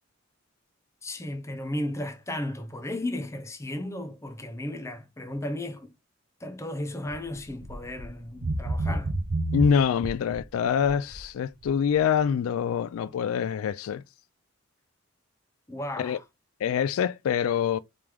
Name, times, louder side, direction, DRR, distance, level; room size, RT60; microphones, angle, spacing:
voice 1, 1.0-5.9 6.4-9.1 15.7-16.2, left 1 dB, 15° left, 0.5 m, -34 dB
sound 1, 7.1-7.3 7.6-8.1 8.4-10.4 10.8-11.2 11.7-11.8, right 2 dB, 65° right, 0.6 m, -29 dB
voice 2, 9.5-14.0 16.0-16.2 16.6-17.8, left 7 dB, 90° left, 0.3 m, -25 dB
3.3 x 3.0 x 3.5 m
head